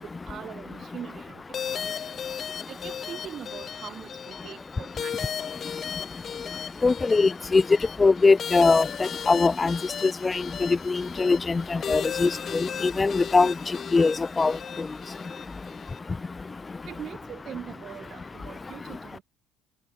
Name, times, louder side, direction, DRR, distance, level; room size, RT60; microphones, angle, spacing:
voice 1, 0.0-1.9 2.7-5.2 16.9-19.2, right 9 dB, 50° right, 7.1 m, -42 dB
sound 1, 1.5-16.0, left 8 dB, 45° left, 1.2 m, -36 dB
voice 2, 6.8-7.6 8.0-9.8 10.2-13.5 13.9-14.5, left 4 dB, 20° left, 0.6 m, -22 dB
supercardioid pair, 95°, 0 cm